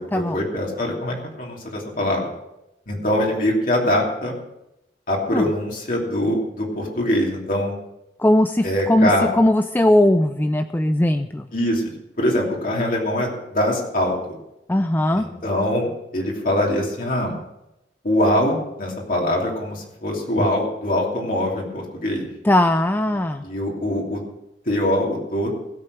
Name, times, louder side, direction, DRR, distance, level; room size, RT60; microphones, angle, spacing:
voice 1, 0.0-2.3 2.9-4.3 5.1-7.7 8.6-9.3 11.5-11.8 12.2-14.4 15.1-17.4 18.0-22.3 23.4-24.2 24.7-25.5, left 1 dB, 50° left, -2 dB, 2.9 m, -23 dB
voice 2, 8.2-11.5 14.7-15.3 22.4-23.4, left 1 dB, 10° left, 8 dB, 0.4 m, -19 dB
16.5 x 7.7 x 6.2 m, 0.89 s
head